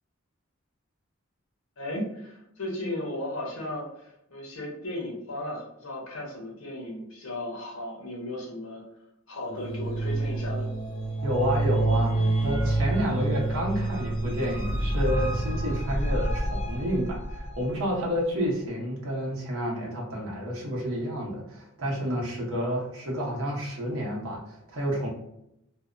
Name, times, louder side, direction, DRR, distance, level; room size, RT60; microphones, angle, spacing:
voice 1, 1.8-8.8 9.3-10.7, left 1 dB, 85° left, -1 dB, 0.8 m, -35 dB
sound 1, 9.5-17.8, right 2 dB, 25° left, 0.8 m, -28 dB
voice 2, 11.2-25.1, equal, 80° right, -3 dB, 0.8 m, -30 dB
2.6 x 2.0 x 2.4 m, 0.81 s
head